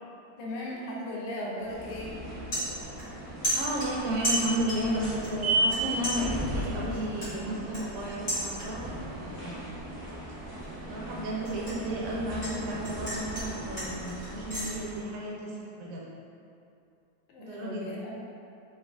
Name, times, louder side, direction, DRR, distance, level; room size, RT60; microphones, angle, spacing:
voice 1, 0.4-2.2 17.3-18.2, left 1 dB, 85° left, -4 dB, 1.9 m, -37 dB
sound 1, 1.6-1.8 2.2-3.2 3.4-4.9 5.2-5.8 6.0-9.0 9.3-9.7 10.1-12.5 12.8-14.7, right 1 dB, 50° left, 0.9 m, -34 dB
sound 2, 1.6-15.2, right 1 dB, 30° left, 0.4 m, -35 dB
voice 2, 3.5-9.7 10.9-16.0 17.4-17.9, right 1 dB, 85° right, -4 dB, 1.9 m, -33 dB
4.7 x 2.3 x 2.3 m, 2.6 s
omnidirectional pair, 3.3 m